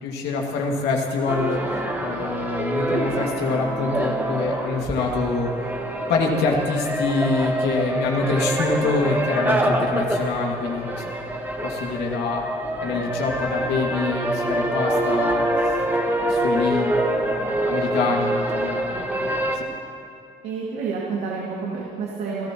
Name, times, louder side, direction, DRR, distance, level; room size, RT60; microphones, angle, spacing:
voice 1, 0.0-5.5 6.1-11.0 11.6-12.4 12.8-15.5 16.0-19.7, left 3 dB, 85° left, 0 dB, 2.2 m, -25 dB
sound 1, 1.3-19.6, right 1 dB, 10° right, 1.5 m, -25 dB
voice 2, 20.4-22.5, right 5 dB, 85° right, -4 dB, 2.4 m, -29 dB
28.0 x 14.5 x 3.0 m, 2.4 s
cardioid pair, 110°, 17 cm